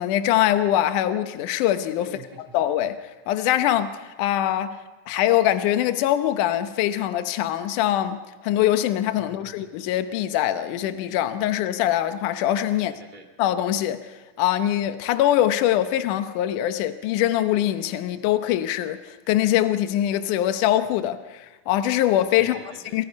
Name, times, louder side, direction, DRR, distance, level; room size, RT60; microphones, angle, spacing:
voice 1, 0.0-2.1 2.5-12.9 13.4-22.6 22.9-23.1, left 12 dB, 75° left, 2.3 m, -23 dB
voice 2, 2.0-2.6 9.3-9.7 12.7-13.3 22.3-23.0, right 3 dB, 15° right, 2.0 m, -45 dB
28.0 x 26.0 x 5.3 m
omnidirectional pair, 3.8 m